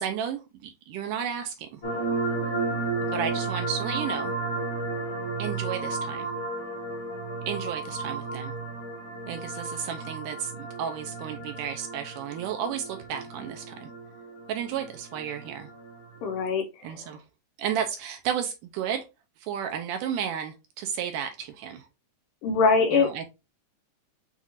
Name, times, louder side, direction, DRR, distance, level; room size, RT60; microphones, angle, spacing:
voice 1, 0.0-1.8 3.0-4.3 5.4-6.3 7.5-8.5 9.3-13.9 14.5-15.7 16.8-17.2 17.6-19.0 19.4-21.9 22.9-23.3, right 8 dB, 80° right, 5 dB, 2.0 m, -33 dB
sound 1, 1.8-16.4, right 3 dB, 60° left, 1.3 m, -33 dB
voice 2, 16.2-16.7 22.4-23.3, left 4 dB, 75° left, 4 dB, 2.3 m, -22 dB
7.3 x 2.4 x 2.7 m, 0.26 s
omnidirectional pair, 4.0 m